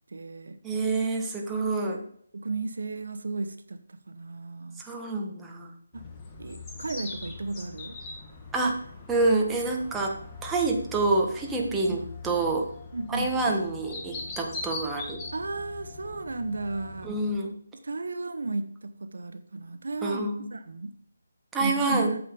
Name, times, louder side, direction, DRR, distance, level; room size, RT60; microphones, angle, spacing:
voice 1, 0.1-0.6 2.3-4.8 5.9-6.1 6.4-8.0 11.6-12.1 12.9-13.6 15.3-17.2 17.8-20.9 21.6-22.2, right 3 dB, 65° right, 11 dB, 0.9 m, -34 dB
voice 2, 0.6-2.0 4.8-5.7 8.5-8.8 9.1-10.1 10.4-12.7 13.1-15.2 17.0-17.5 20.0-20.5 21.5-22.2, right 3 dB, 10° right, 0 dB, 1.4 m, -27 dB
sound 1, 5.9-17.4, left 3 dB, 15° left, 1.7 m, -42 dB
8.8 x 7.1 x 5.0 m, 0.64 s
figure-of-eight pair, 150°, 0 cm